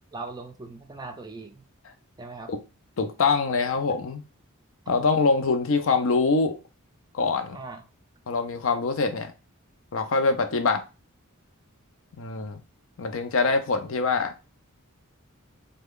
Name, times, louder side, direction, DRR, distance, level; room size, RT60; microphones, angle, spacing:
voice 1, 0.1-1.6 2.2-2.5 4.9-5.0 7.5-7.9, right 3 dB, 20° right, 0.4 m, -39 dB
voice 2, 3.0-4.2 4.9-6.6 7.1-7.6 8.3-9.3 9.9-10.8 12.2-12.6 13.0-14.3, left 4 dB, 65° left, 0.5 m, -24 dB
3.3 x 2.2 x 3.6 m
head